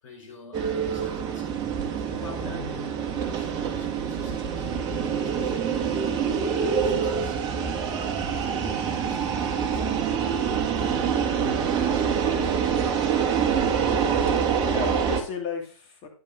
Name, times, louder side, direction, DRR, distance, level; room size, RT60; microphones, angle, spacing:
voice 1, 0.0-1.6 2.0-4.7 5.0-5.8 6.1-12.9, left 3 dB, 65° left, 5.0 m, -46 dB
sound 1, 0.5-15.2, right 7 dB, 25° right, 1.4 m, -26 dB
voice 2, 13.8-14.1 14.5-16.1, left 7 dB, 30° left, 2.7 m, -34 dB
10.5 x 5.3 x 5.3 m
hypercardioid pair, 135°, 18 cm